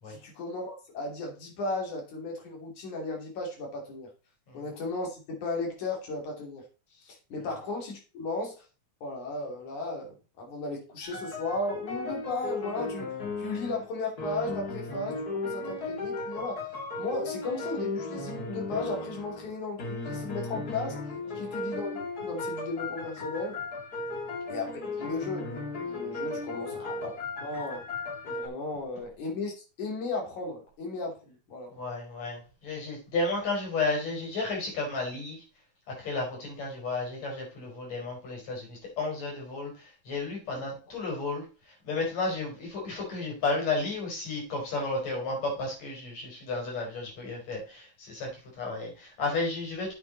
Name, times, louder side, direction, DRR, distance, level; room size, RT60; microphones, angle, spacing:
voice 1, 0.1-4.1 4.5-6.6 7.0-8.7 9.0-16.6 17.0-21.0 21.4-23.6 24.5-24.7 25.0-25.5 25.8-27.1 27.4-27.8 28.2-31.7 40.5-40.7, left 2 dB, 85° left, 1 dB, 4.4 m, -35 dB
sound 1, 11.0-13.9 14.2-19.5 19.8-28.5, left 3 dB, 35° left, 2.2 m, -36 dB
voice 2, 31.7-35.4 35.9-49.9, left 3 dB, 65° left, -1 dB, 6.0 m, -33 dB
8.4 x 8.4 x 4.1 m, 0.33 s
omnidirectional pair, 3.3 m